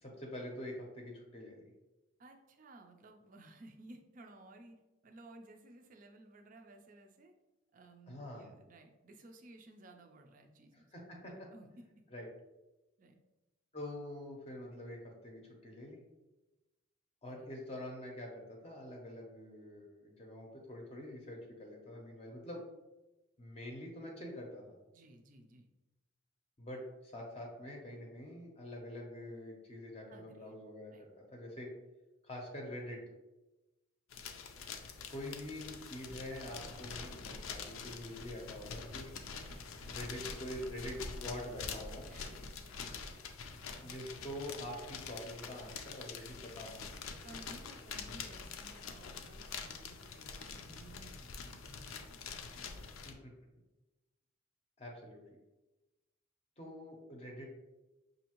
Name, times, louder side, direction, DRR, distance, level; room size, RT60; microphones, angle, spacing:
voice 1, 0.0-1.6 8.1-8.5 10.9-11.5 12.1-12.3 13.7-16.0 17.2-22.6 23.4-24.7 26.6-31.7 32.2-33.0 35.1-39.2 39.9-42.1 43.8-46.8 53.0-53.3 54.8-55.2 56.6-57.4, left 1 dB, 30° left, 0 dB, 0.6 m, -45 dB
voice 2, 2.2-4.8 5.0-7.3 7.7-10.9 11.2-12.0 13.0-13.2 17.3-17.5 22.3-22.4 24.9-25.7 30.1-30.5 30.9-31.1 36.0-36.2 36.5-36.9 39.3-39.6 42.1-42.9 43.7-43.9 47.2-52.2 52.5-52.8, right 2 dB, 40° right, 4 dB, 0.4 m, -57 dB
sound 1, 34.1-53.1, left 5 dB, 85° left, 0.5 m, -46 dB
5.5 x 2.6 x 2.9 m, 1.1 s
head